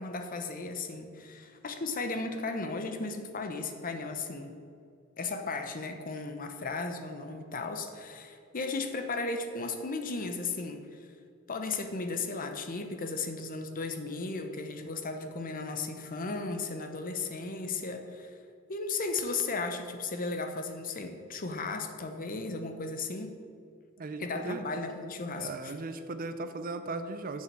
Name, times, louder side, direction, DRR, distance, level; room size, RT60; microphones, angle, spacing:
voice 1, 0.0-4.5 5.2-11.0 11.5-18.3 18.7-23.3 24.2-25.7, left 3 dB, 40° left, 6 dB, 0.8 m, -35 dB
voice 2, 24.0-24.6 25.4-27.4, right 3 dB, 45° right, 10 dB, 0.6 m, -37 dB
7.9 x 5.6 x 7.4 m, 2.4 s
head